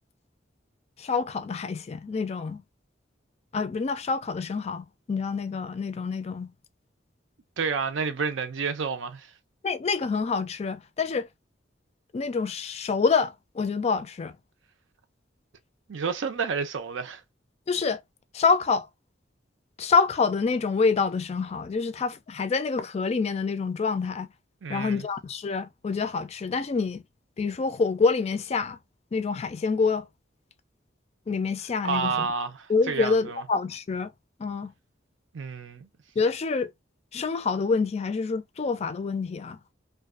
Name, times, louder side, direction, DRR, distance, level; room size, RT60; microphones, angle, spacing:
voice 1, 1.0-2.6 3.5-6.5 9.6-11.3 12.1-14.4 17.7-18.0 18.3-18.9 19.8-24.3 24.7-27.0 27.4-28.8 29.1-30.1 31.3-32.3 32.7-34.1 34.4-34.7 36.2-36.7 37.1-39.6, left 4 dB, 35° left, 0.3 m, -27 dB
voice 2, 7.6-9.3 15.9-17.2 24.6-25.1 31.8-33.4 35.3-35.9, right 5 dB, 85° right, 0.5 m, -30 dB
2.5 x 2.3 x 2.3 m
head